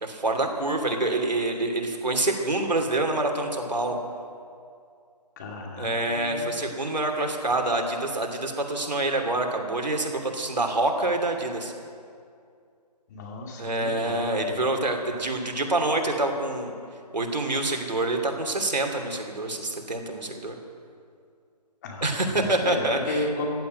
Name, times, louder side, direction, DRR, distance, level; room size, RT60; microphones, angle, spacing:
voice 1, 0.0-4.0 5.8-11.7 13.6-16.7 17.1-20.5 22.0-23.3, right 2 dB, 90° right, 3 dB, 2.8 m, -26 dB
voice 2, 5.4-6.5 13.1-14.5 21.8-23.6, left 2 dB, 25° left, 0 dB, 2.4 m, -34 dB
15.5 x 9.8 x 9.2 m, 2.3 s
figure-of-eight pair, 160°, 21 cm